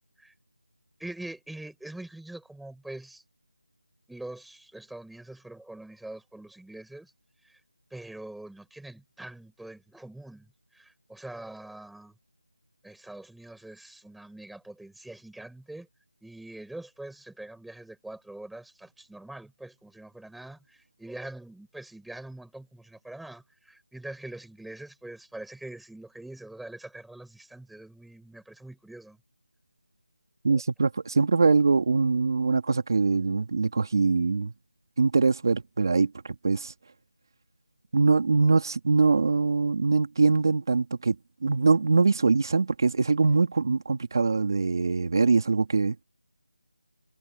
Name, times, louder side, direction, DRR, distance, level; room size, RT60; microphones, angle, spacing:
voice 1, 1.0-3.2 4.1-7.1 7.4-7.6 7.9-12.1 12.8-15.9 16.2-29.2 30.5-30.6, right 2 dB, ahead, 7.0 m, -44 dB
voice 2, 30.4-34.5 35.0-36.7 37.9-41.2 41.4-46.0, right 4 dB, 35° right, 2.6 m, -23 dB
figure-of-eight pair, 175°, 4 cm